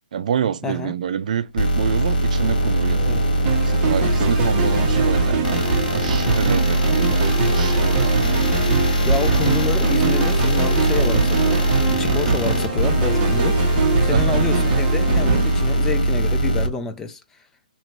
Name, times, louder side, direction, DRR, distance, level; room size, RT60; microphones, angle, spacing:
voice 1, 0.1-3.0 3.6-8.4 14.1-14.4, right 8 dB, 55° right, 0.5 m, -27 dB
voice 2, 0.6-0.9 3.0-3.3 9.0-13.6 14.0-17.2, left 5 dB, 10° left, 0.3 m, -28 dB
sound 1, 1.6-16.7, right 1 dB, 75° left, 1.5 m, -21 dB
sound 2, 2.3-15.4, left 2 dB, 25° left, 2.0 m, -33 dB
sound 3, 3.4-16.4, right 5 dB, 25° right, 1.1 m, -24 dB
3.1 x 2.6 x 4.4 m
hypercardioid pair, 155°, 5 cm